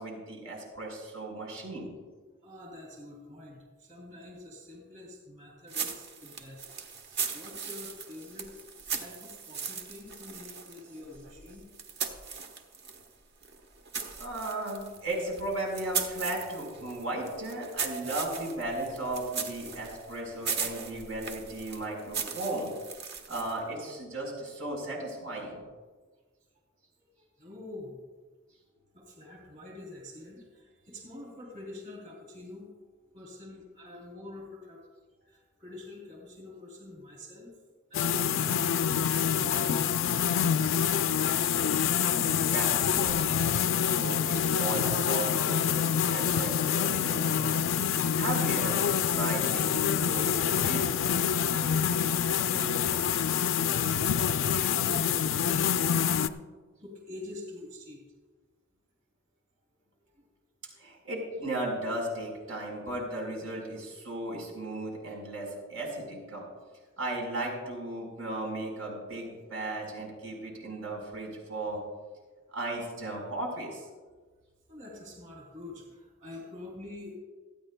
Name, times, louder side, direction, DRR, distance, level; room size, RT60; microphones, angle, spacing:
voice 1, 0.0-1.9 14.2-22.7 23.3-25.6 42.0-47.6 47.9-51.0 60.8-66.4 67.0-71.8 72.5-73.9, right 2 dB, 85° right, -1 dB, 4.4 m, -36 dB
voice 2, 2.4-6.7 7.3-8.6 9.0-11.7 27.0-28.0 28.9-32.7 33.1-34.8 35.1-37.5 37.9-40.3 51.7-56.2 56.8-58.0 60.1-60.2 74.6-77.2, left 2 dB, 40° right, -2 dB, 3.0 m, -46 dB
sound 1, 5.7-13.1 13.4-23.7, right 6 dB, 55° right, 1.2 m, -38 dB
sound 2, 37.9-56.3, left 8 dB, 70° left, 0.5 m, -26 dB
28.5 x 9.5 x 2.2 m, 1.4 s
head